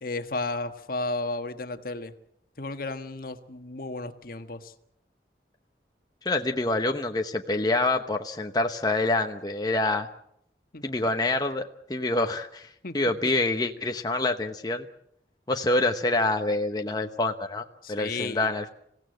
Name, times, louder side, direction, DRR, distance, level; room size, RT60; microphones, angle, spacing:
voice 1, 0.0-2.1 2.6-4.7 10.7-10.8 12.8-13.0 17.8-18.5, left 2 dB, 55° left, 8 dB, 1.4 m, -33 dB
voice 2, 6.2-10.1 10.8-11.6 11.9-14.8 15.5-18.7, left 2 dB, 25° left, 4 dB, 1.0 m, -26 dB
27.0 x 16.5 x 7.7 m, 0.74 s
head